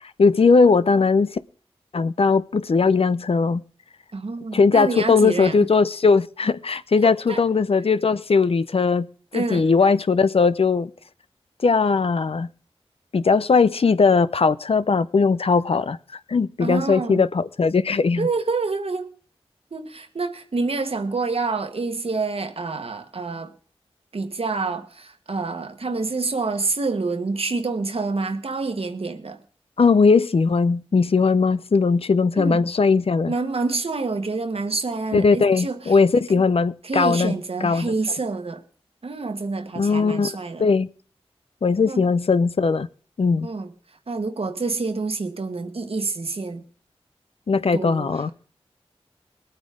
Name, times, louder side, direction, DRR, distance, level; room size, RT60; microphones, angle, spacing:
voice 1, 0.0-1.4 1.9-3.6 4.5-9.1 9.3-10.9 11.6-12.5 13.1-16.0 16.3-18.3 29.8-33.3 35.1-37.3 37.6-37.9 39.8-40.3 40.6-40.9 41.6-42.9 43.2-43.5 47.5-48.3, left 4 dB, 65° left, 0.6 m, -19 dB
voice 2, 4.1-5.6 7.0-7.4 9.3-9.6 16.6-17.3 18.2-19.1 19.7-23.5 24.1-29.4 32.3-32.6 33.3-36.0 36.4-36.5 36.8-38.6 39.0-40.6 41.9-42.0 43.4-43.7 44.1-46.6 47.7-48.3, right 3 dB, 65° right, 1.5 m, -27 dB
20.5 x 9.0 x 3.7 m
cardioid pair, 50°, 11 cm